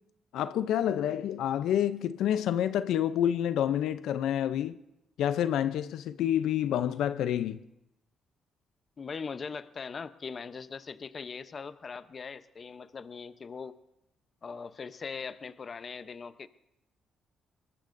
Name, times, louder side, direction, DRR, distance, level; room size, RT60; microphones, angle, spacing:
voice 1, 0.3-4.7 5.2-7.6, left 10 dB, 80° left, 0.5 m, -28 dB
voice 2, 9.0-13.8 14.4-16.5, left 5 dB, 40° left, 0.7 m, -40 dB
22.0 x 20.0 x 2.6 m
cardioid pair, 90°, 0 cm